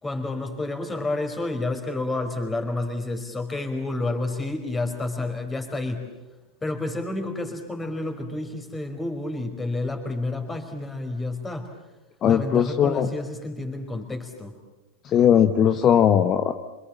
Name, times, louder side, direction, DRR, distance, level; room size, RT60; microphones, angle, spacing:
voice 1, 0.0-6.1 6.6-11.7 12.2-14.5, left 2 dB, 10° left, 5 dB, 5.0 m, -30 dB
voice 2, 12.2-13.1 15.0-16.5, left 9 dB, 30° left, 8 dB, 1.3 m, -19 dB
28.0 x 27.0 x 7.5 m, 1.0 s
figure-of-eight pair, 90°, 0 cm